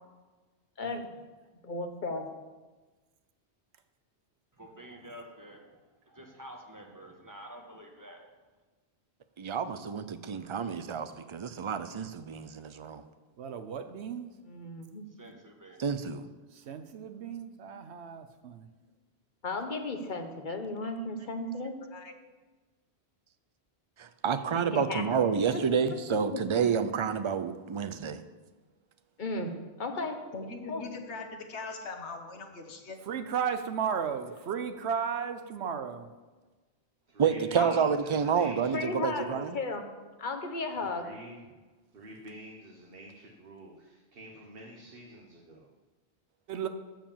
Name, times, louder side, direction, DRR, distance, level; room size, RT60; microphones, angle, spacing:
voice 1, 1.6-2.3 14.4-15.0 19.4-21.8 24.5-25.0 25.5-25.8 26.3-26.6 29.2-29.5 29.8-30.2 30.7-30.8 37.6-37.8 38.7-39.9 40.2-41.1, left 2 dB, 45° left, 1.3 m, -34 dB
voice 2, 4.6-5.7 6.1-8.3 15.1-15.8, equal, 20° right, 1.4 m, -48 dB
voice 3, 9.4-13.0 15.8-16.2 24.0-28.2 37.2-39.6, right 6 dB, 40° right, 0.5 m, -29 dB
voice 4, 13.4-14.3 16.5-18.7 33.1-36.1 46.5-46.7, right 7 dB, 80° right, 1.0 m, -34 dB
voice 5, 21.8-22.1 30.3-33.0, left 3 dB, 90° left, 1.4 m, -41 dB
voice 6, 37.1-39.6 40.8-41.4 41.9-45.7, right 1 dB, 60° right, 1.4 m, -47 dB
12.5 x 4.9 x 7.3 m
omnidirectional pair, 1.1 m